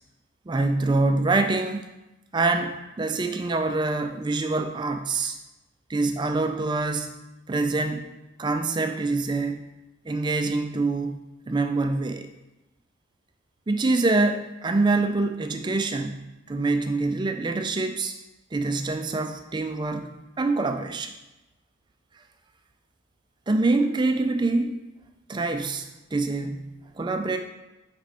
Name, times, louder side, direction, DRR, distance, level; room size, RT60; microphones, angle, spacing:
voice 1, 0.5-1.8 2.3-5.4 5.9-9.6 10.1-11.2 11.5-12.3 13.7-18.2 18.5-20.1 20.4-21.1 23.5-24.8 25.3-27.4, right 3 dB, 20° right, 6 dB, 0.3 m, -25 dB
5.1 x 4.6 x 4.1 m, 0.99 s
head